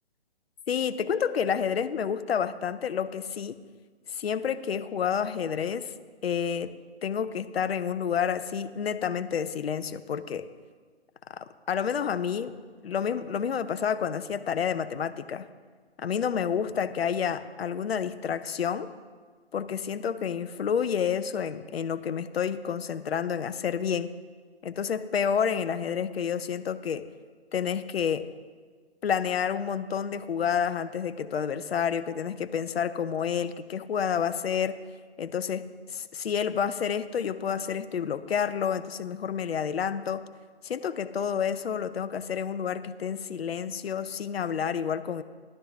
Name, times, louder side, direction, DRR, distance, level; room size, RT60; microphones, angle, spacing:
voice 1, 0.7-3.6 4.1-5.9 6.2-6.7 7.0-10.5 11.3-12.5 12.8-15.5 16.0-18.9 19.5-24.1 24.6-27.1 27.5-28.3 29.0-34.8 35.2-35.6 36.1-40.2 40.6-45.2, left 7 dB, 65° left, 12 dB, 0.7 m, -29 dB
13.0 x 11.5 x 3.6 m, 1.5 s
figure-of-eight pair, 145°, 33 cm